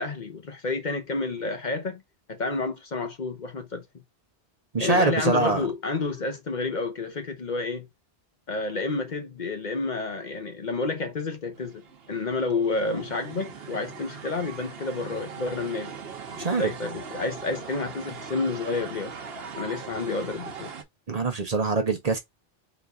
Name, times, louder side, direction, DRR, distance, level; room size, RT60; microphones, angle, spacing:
voice 1, 0.0-2.0 2.3-3.8 4.8-7.9 8.5-11.8 12.1-15.9 16.4-19.2 19.6-20.7, left 3 dB, 50° left, 0.9 m, -30 dB
voice 2, 4.7-5.6 16.4-16.7 21.1-22.2, right 3 dB, 40° right, 0.8 m, -24 dB
sound 1, 11.5-20.8, right 6 dB, 70° right, 1.1 m, -40 dB
4.0 x 2.6 x 3.5 m
omnidirectional pair, 1.1 m